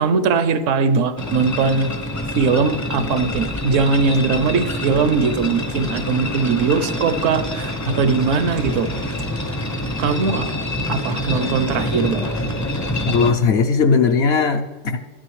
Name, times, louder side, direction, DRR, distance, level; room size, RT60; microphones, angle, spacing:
voice 1, 0.0-1.9 2.4-8.9 10.0-10.5 10.9-12.3, right 5 dB, 70° right, 12 dB, 0.9 m, -20 dB
sound 1, 1.2-13.3, left 1 dB, 25° left, 0.4 m, -26 dB
voice 2, 13.0-15.0, left 5 dB, 65° left, 7 dB, 0.7 m, -18 dB
12.5 x 10.0 x 3.2 m, 1.3 s
omnidirectional pair, 1.4 m